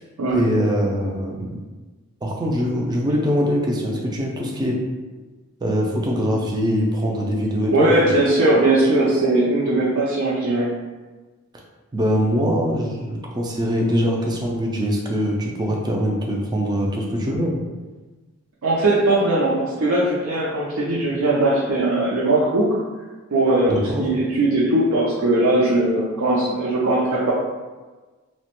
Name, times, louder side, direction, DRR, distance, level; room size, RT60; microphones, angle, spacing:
voice 1, 0.3-1.6 2.2-4.8 5.6-7.9 11.9-17.5 23.7-24.0, equal, 20° right, -1 dB, 0.3 m, -22 dB
voice 2, 7.7-10.7 18.6-22.7 23.3-23.7 24.0-27.3, right 2 dB, 75° right, -7 dB, 0.5 m, -19 dB
2.9 x 2.1 x 2.9 m, 1.3 s
head